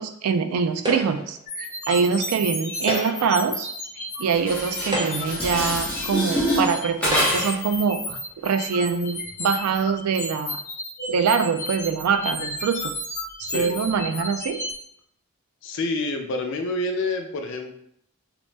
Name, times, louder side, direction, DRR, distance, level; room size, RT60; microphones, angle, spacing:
voice 1, 0.0-3.7 4.2-10.6 11.1-12.9 13.5-14.6, right 6 dB, 80° right, 8 dB, 0.3 m, -24 dB
sound 1, 0.8-1.4 2.7-3.4 4.2-4.3 4.8-5.5 6.4-6.5 7.0-7.6, equal, 20° right, 0.6 m, -30 dB
sound 2, 1.5-14.7, left 1 dB, 40° left, 0.9 m, -33 dB
Dishes pots and pans, 4.3-7.7, equal, 5° left, 0.8 m, -26 dB
voice 2, 15.6-17.7, left 2 dB, 55° left, 4 dB, 0.4 m, -27 dB
2.9 x 2.0 x 3.2 m, 0.69 s
head